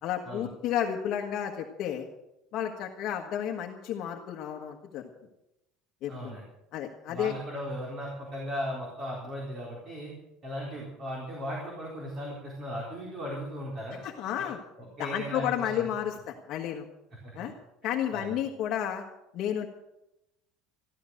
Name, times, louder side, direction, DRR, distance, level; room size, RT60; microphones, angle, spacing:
voice 1, 0.0-2.1 2.5-5.1 6.0-6.4 6.7-7.3 14.0-14.6 15.0-16.9 17.3-17.5 17.8-19.0 19.3-19.7, left 10 dB, 45° left, 1 dB, 1.4 m, -32 dB
voice 2, 6.1-6.4 7.1-10.1 10.4-14.0 14.4-14.5 14.8-15.9 17.2-17.3 18.1-18.4, equal, 30° right, -3 dB, 4.1 m, -37 dB
14.0 x 13.0 x 6.5 m, 0.90 s
cardioid pair, 165°, 0 cm